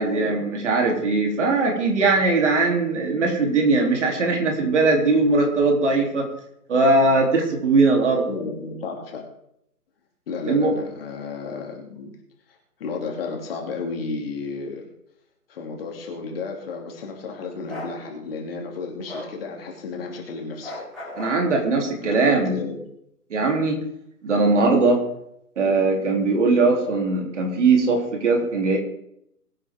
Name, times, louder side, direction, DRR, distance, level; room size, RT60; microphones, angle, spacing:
voice 1, 0.0-6.3 6.7-8.2 10.5-10.7 21.2-22.6 23.3-23.8 24.2-25.0 25.6-28.8, right 3 dB, 50° right, 1 dB, 3.6 m, -20 dB
voice 2, 8.3-9.2 10.3-12.1 12.8-14.9 15.5-20.7 22.0-22.8, left 4 dB, 35° left, 0 dB, 3.1 m, -32 dB
Bark, 17.7-17.9 19.1-19.3 20.6-21.4, left 2 dB, ahead, 0.6 m, -35 dB
22.0 x 9.6 x 3.8 m, 0.77 s
figure-of-eight pair, 150°, 47 cm